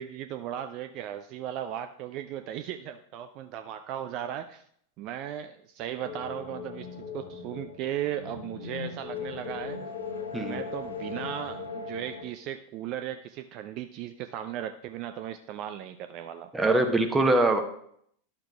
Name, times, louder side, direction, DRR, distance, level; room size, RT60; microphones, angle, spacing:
voice 1, 0.0-4.6 5.0-6.9 7.1-9.8 10.4-16.5, right 11 dB, 40° right, 9 dB, 0.3 m, -36 dB
sound 1, 6.0-12.2, left 5 dB, 70° left, 1.3 m, -38 dB
voice 2, 16.5-17.6, right 2 dB, 10° right, 5 dB, 0.9 m, -23 dB
11.5 x 6.5 x 2.3 m, 0.68 s
figure-of-eight pair, 90°, 0 cm